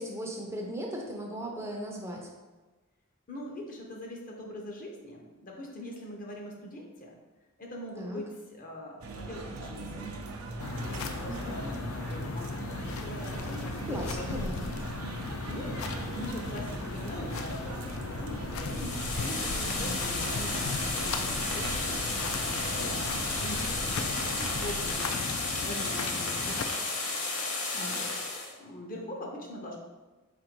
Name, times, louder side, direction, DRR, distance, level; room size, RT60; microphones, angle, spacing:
voice 1, 0.0-2.3 8.0-8.2 11.3-11.8 13.5-14.7 27.7-28.0, equal, 10° right, 0 dB, 0.5 m, -38 dB
voice 2, 3.3-7.1 7.6-10.1 10.7-14.7 15.5-21.8 22.2-25.0 25.4-27.1 27.7-29.8, equal, 40° left, 0 dB, 0.7 m, -42 dB
sound 1, 9.0-24.9, right 2 dB, 80° right, 0.6 m, -40 dB
sound 2, 10.6-26.6, left 4 dB, 70° left, 0.4 m, -37 dB
sound 3, 18.6-28.5, left 3 dB, 85° left, 0.9 m, -33 dB
4.3 x 2.6 x 4.4 m, 1.2 s
head